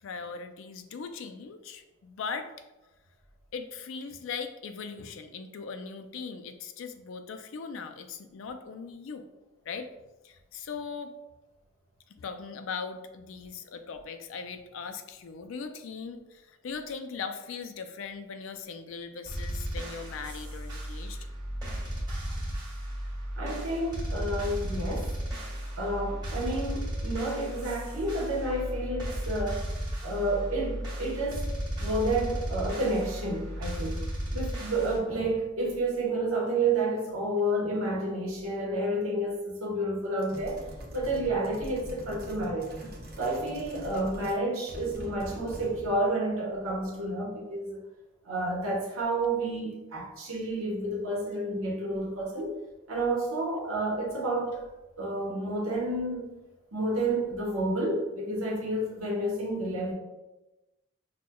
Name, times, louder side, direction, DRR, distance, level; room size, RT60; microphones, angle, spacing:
voice 1, 0.0-2.5 3.5-9.2 9.7-9.9 10.2-11.1 12.1-21.3, left 5 dB, 65° left, 7 dB, 0.4 m, -39 dB
sound 1, 19.3-35.0, right 1 dB, 20° right, 1.4 m, -35 dB
voice 2, 23.4-25.1 25.8-29.6 30.0-31.5 31.8-34.1 34.3-40.6 40.9-42.9 43.2-47.8 48.2-52.5 52.9-54.6 55.0-56.3 56.7-59.9, right 1 dB, 80° right, -2 dB, 1.1 m, -30 dB
sound 2, 40.2-44.4 44.7-46.0, equal, 45° right, 0.7 m, -43 dB
6.0 x 2.2 x 2.2 m, 1.0 s
head